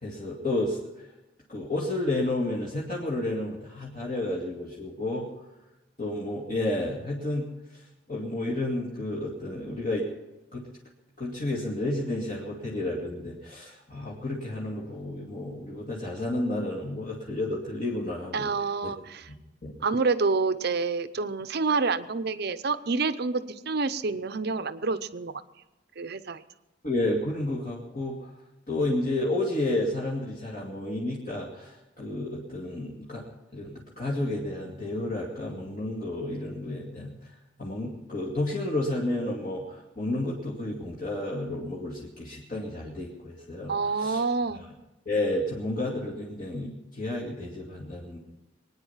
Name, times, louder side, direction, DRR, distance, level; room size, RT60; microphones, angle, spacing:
voice 1, 0.0-1.1 1.5-5.3 6.0-10.1 10.5-10.7 11.2-18.5 18.8-18.9 19.3-19.4 19.6-19.7 26.8-28.4 28.7-33.2 33.5-44.2 44.5-44.7 45.1-48.2, left 1 dB, 45° left, -5 dB, 2.3 m, -31 dB
voice 2, 18.3-19.2 19.8-25.4 26.0-26.4 43.7-44.6, right 4 dB, 55° right, 12 dB, 0.7 m, -28 dB
23.0 x 9.6 x 5.7 m, 1.0 s
head